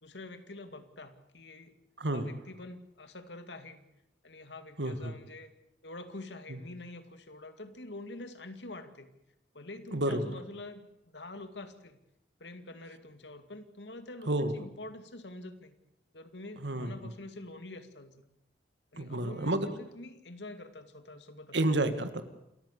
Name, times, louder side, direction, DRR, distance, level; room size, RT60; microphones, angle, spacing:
voice 1, 0.0-1.7 2.1-3.8 4.2-5.5 5.8-9.1 9.5-10.8 11.1-12.0 12.4-15.8 16.1-18.2 18.9-21.6, left 2 dB, 85° left, 9 dB, 2.3 m, -46 dB
voice 2, 2.0-2.4 4.8-5.1 6.5-6.6 9.9-10.3 14.3-14.5 16.6-17.1 19.0-19.7 21.5-22.2, right 1 dB, 90° right, 10 dB, 2.1 m, -30 dB
28.0 x 14.0 x 8.4 m, 0.83 s
head